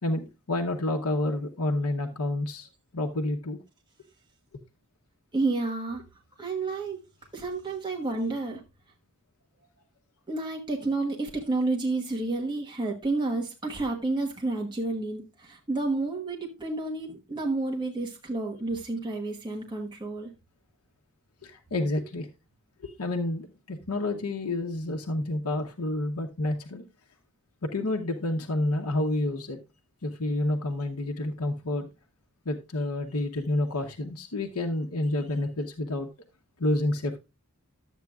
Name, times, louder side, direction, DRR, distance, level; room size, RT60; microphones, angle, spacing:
voice 1, 0.0-2.7 2.9-3.6 4.5-4.6 21.4-22.3 22.8-26.8 27.6-29.6 30.0-31.9 32.4-36.1 36.6-37.2, left 1 dB, 85° left, 0.9 m, -29 dB
voice 2, 5.3-6.0 6.4-7.0 7.3-8.6 10.3-20.3, right 3 dB, 20° right, 1.2 m, -30 dB
12.0 x 8.2 x 2.3 m
head